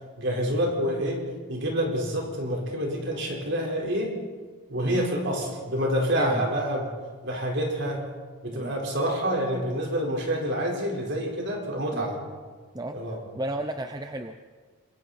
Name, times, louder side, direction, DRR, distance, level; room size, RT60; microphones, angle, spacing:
voice 1, 0.2-1.2 1.5-4.2 4.7-6.9 7.2-8.0 8.4-12.2 12.9-13.2, equal, 55° right, -1 dB, 4.5 m, -27 dB
voice 2, 13.3-14.4, right 1 dB, 20° right, 7 dB, 0.6 m, -33 dB
27.0 x 22.5 x 4.3 m, 1.5 s
head